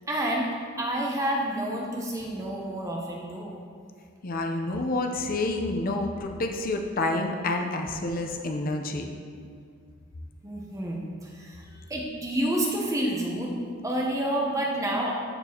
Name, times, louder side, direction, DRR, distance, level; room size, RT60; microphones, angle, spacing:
voice 1, 0.1-3.6 10.4-13.6 13.8-15.1, right 1 dB, 15° right, -1 dB, 0.7 m, -29 dB
voice 2, 4.2-9.0, left 2 dB, 45° left, 3 dB, 0.6 m, -28 dB
13.5 x 4.5 x 2.8 m, 2.2 s
head